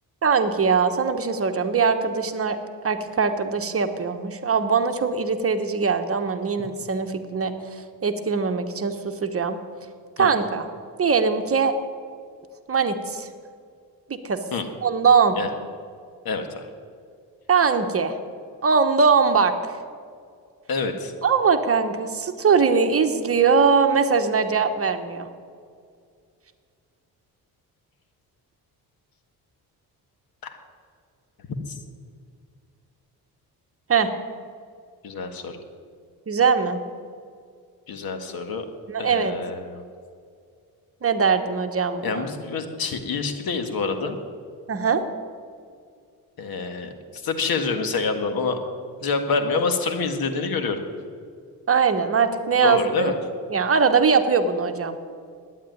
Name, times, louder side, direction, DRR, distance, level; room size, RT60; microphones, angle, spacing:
voice 1, 0.2-2.6 2.8-9.6 10.2-10.7 11.0-11.7 12.7-13.3 14.1-14.4 14.8-15.3 17.5-18.1 18.6-19.8 21.2-25.3 33.9-34.1 36.3-36.8 38.9-39.3 41.0-42.3 44.7-45.0 51.7-53.2 53.5-55.0, right 5 dB, 35° right, 7 dB, 1.1 m, -21 dB
voice 2, 16.2-16.7 20.7-21.1 30.4-30.6 35.0-35.6 37.9-38.6 39.0-39.8 42.0-44.2 46.4-48.6 49.0-50.8 52.6-53.1, left 4 dB, 70° left, 7 dB, 1.6 m, -27 dB
12.0 x 9.8 x 9.3 m, 2.3 s
cardioid pair, 105°, 38 cm